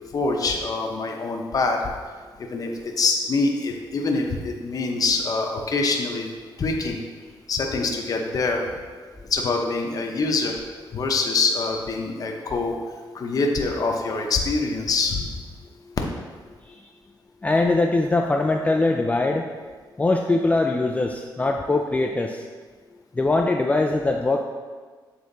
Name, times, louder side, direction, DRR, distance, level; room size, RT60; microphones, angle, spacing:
voice 1, 0.0-1.8 2.4-2.7 3.0-6.3 6.6-7.0 7.5-8.6 9.3-10.6 10.9-12.8 13.1-15.3, left 3 dB, 45° left, 1 dB, 0.7 m, -24 dB
voice 2, 17.4-19.5 20.0-22.4 23.2-24.4, left 2 dB, 15° left, 2 dB, 0.3 m, -22 dB
7.0 x 3.4 x 3.9 m, 1.5 s
cardioid pair, 105°, 9 cm